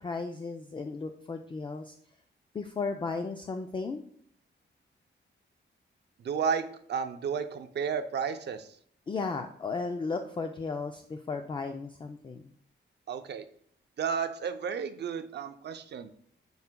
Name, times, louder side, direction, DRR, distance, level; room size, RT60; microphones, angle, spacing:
voice 1, 0.0-1.9 2.5-4.0 9.1-12.4, left 4 dB, 25° left, 5 dB, 0.3 m, -35 dB
voice 2, 6.2-8.7 13.1-13.4 14.0-16.1, right 6 dB, 60° right, 9 dB, 0.5 m, -32 dB
9.4 x 5.6 x 2.2 m, 0.64 s
wide cardioid pair, 160°, 20 cm